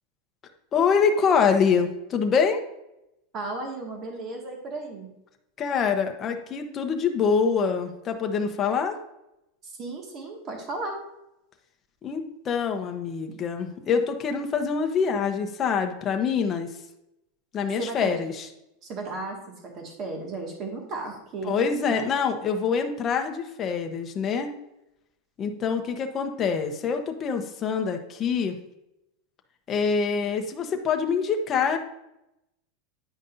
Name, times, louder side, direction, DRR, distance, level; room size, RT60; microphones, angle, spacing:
voice 1, 0.7-2.6 5.6-9.0 12.0-16.7 17.5-18.5 21.4-24.5 25.4-28.6 29.7-31.8, left 6 dB, 25° left, 4 dB, 0.9 m, -25 dB
voice 2, 3.3-5.1 9.6-11.0 17.8-18.1 18.8-22.1, right 3 dB, 35° right, 1 dB, 1.9 m, -35 dB
9.9 x 5.3 x 2.6 m, 0.86 s
supercardioid pair, 140°, 0 cm